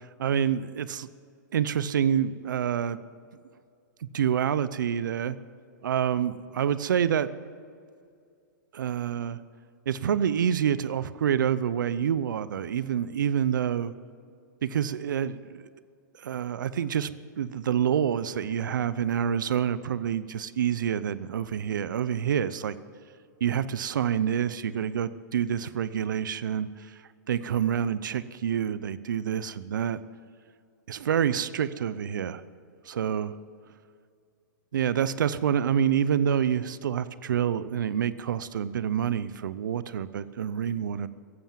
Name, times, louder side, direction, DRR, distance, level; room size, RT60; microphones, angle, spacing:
voice 1, 0.2-1.1 1.5-3.0 4.1-5.4 5.8-7.3 8.7-9.4 9.9-13.9 14.6-15.6 16.2-17.1 17.4-22.8 23.4-26.7 27.3-30.0 30.9-32.4 32.9-33.3 34.7-41.1, right 8 dB, 85° right, 16 dB, 0.6 m, -27 dB
15.0 x 11.0 x 7.4 m, 2.3 s
hypercardioid pair, 135°, 10 cm